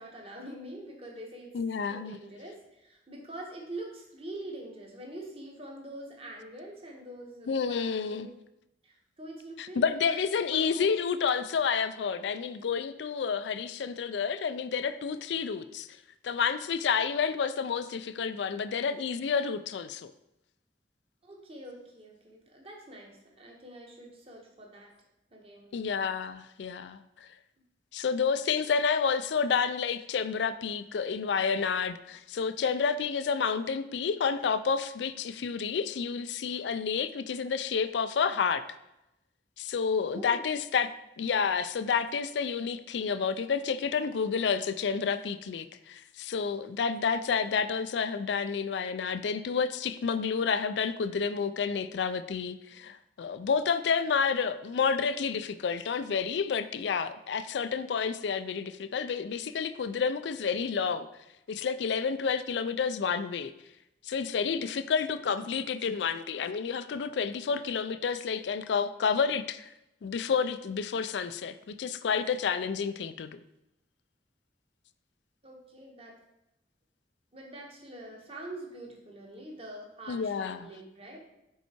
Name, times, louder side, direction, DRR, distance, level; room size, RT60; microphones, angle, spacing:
voice 1, 0.0-1.5 1.9-8.3 8.8-10.2 10.5-10.9 21.2-24.9 25.3-25.7 40.1-40.4 75.4-76.1 77.3-81.2, right 1 dB, 35° right, 0 dB, 1.3 m, -44 dB
voice 2, 1.5-2.2 7.5-8.3 9.6-15.9 16.2-20.1 25.7-27.3 27.9-38.6 39.6-40.9 41.2-61.1 61.5-63.5 64.1-69.7 70.0-73.4 80.1-80.7, left 6 dB, 85° left, 13 dB, 0.4 m, -30 dB
5.5 x 4.5 x 4.4 m, 0.88 s
head